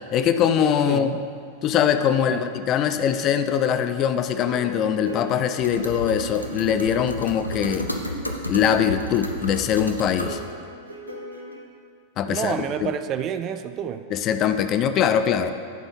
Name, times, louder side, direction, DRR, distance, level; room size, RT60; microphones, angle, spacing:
voice 1, 0.1-1.2 1.6-7.9 8.5-10.4 12.2-12.9 14.1-15.5, left 8 dB, 35° left, 9 dB, 0.4 m, -22 dB
voice 2, 0.9-1.2 2.3-2.5 12.3-14.1, right 9 dB, 35° right, 10 dB, 0.3 m, -29 dB
sound 1, 4.4-11.7, equal, 80° right, 0.9 m, -38 dB
sound 2, 5.6-10.4, left 1 dB, 90° left, 0.5 m, -32 dB
10.5 x 4.4 x 4.5 m, 2.2 s
figure-of-eight pair, 90°, 0 cm